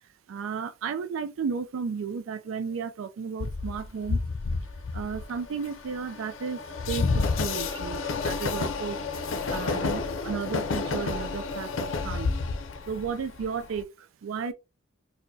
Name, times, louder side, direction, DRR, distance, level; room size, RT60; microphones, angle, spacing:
voice 1, 0.3-4.2 4.9-6.6 6.9-7.1 7.4-8.0 8.2-9.0 9.5-11.7 12.0-12.3 12.9-13.8 14.2-14.5, right 6 dB, 80° right, 0.4 m, -33 dB
Train, 3.4-13.8, left 4 dB, 75° left, 0.5 m, -30 dB
4.5 x 2.1 x 2.6 m
head